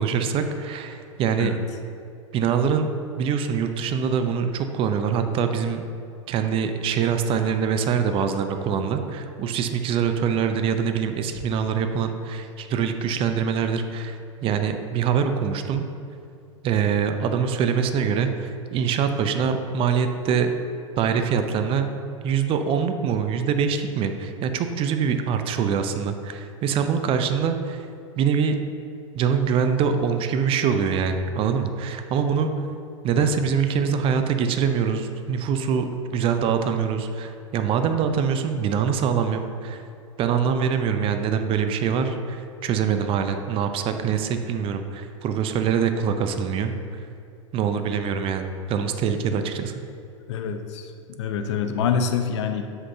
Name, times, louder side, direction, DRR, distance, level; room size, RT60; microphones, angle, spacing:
voice 1, 0.0-1.6 2.3-2.9 3.2-5.8 6.3-15.8 16.6-20.5 21.0-21.9 22.2-27.9 28.2-28.6 29.1-32.5 33.0-39.8 40.2-47.0 47.5-49.8, right 7 dB, 35° right, 7 dB, 0.7 m, -24 dB
voice 2, 50.3-50.9 51.2-52.6, left 6 dB, 60° left, 6 dB, 0.8 m, -26 dB
9.8 x 7.7 x 2.8 m, 2.4 s
figure-of-eight pair, 95°, 17 cm